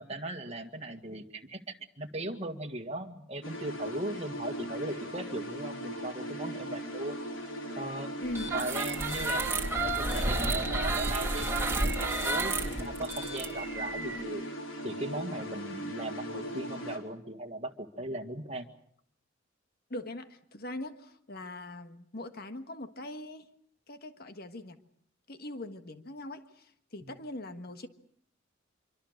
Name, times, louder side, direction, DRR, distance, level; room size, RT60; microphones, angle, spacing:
voice 1, 0.0-7.2 7.8-8.1 8.5-14.4 14.8-18.6 27.0-27.2, right 1 dB, 35° right, 4 dB, 1.9 m, -38 dB
sound 1, 3.4-17.0, equal, 80° left, 4.4 m, -39 dB
sound 2, 8.3-14.2, right 2 dB, 15° right, 2.7 m, -31 dB
voice 2, 19.9-23.5 23.9-24.8 25.3-27.9, left 1 dB, 50° left, 8 dB, 1.6 m, -41 dB
25.5 x 24.5 x 6.6 m, 0.66 s
head